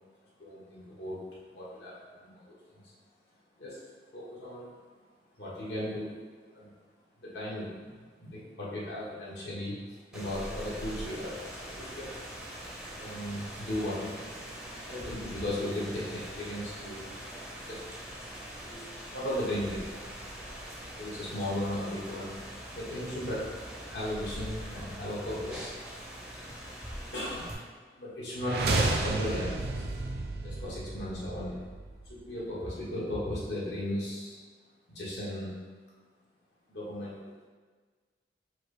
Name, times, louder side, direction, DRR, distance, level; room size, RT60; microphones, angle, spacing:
voice 1, 0.4-1.2 1.5-2.8 3.6-3.8 4.1-4.7 5.4-6.2 6.5-6.7 7.2-11.4 11.7-12.1 12.9-14.4 14.9-17.1 17.7-17.9 18.5-18.9 19.1-19.9 21.0-22.4 22.7-23.5 23.8-25.7 27.1-27.6 28.0-29.9 30.4-31.6 32.1-34.4 34.9-35.5 36.7-37.5, left 1 dB, 75° left, -7 dB, 1.4 m, -36 dB
Rain, 10.1-27.5, equal, 5° right, 0.5 m, -43 dB
sound 1, 28.4-32.4, right 2 dB, 60° right, 0.4 m, -32 dB
4.6 x 2.2 x 4.8 m, 1.5 s
head